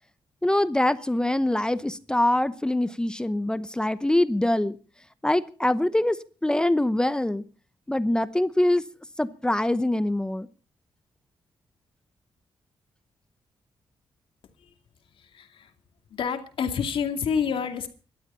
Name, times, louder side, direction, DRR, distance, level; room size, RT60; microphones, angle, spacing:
voice 1, 0.4-4.8 5.2-7.4 7.9-8.8 9.2-10.5, left 1 dB, 10° left, 14 dB, 0.8 m, -24 dB
voice 2, 15.1-15.7 16.1-17.9, left 7 dB, 70° left, 6 dB, 2.5 m, -28 dB
19.0 x 12.5 x 5.6 m, 0.39 s
cardioid pair, 110°, 9 cm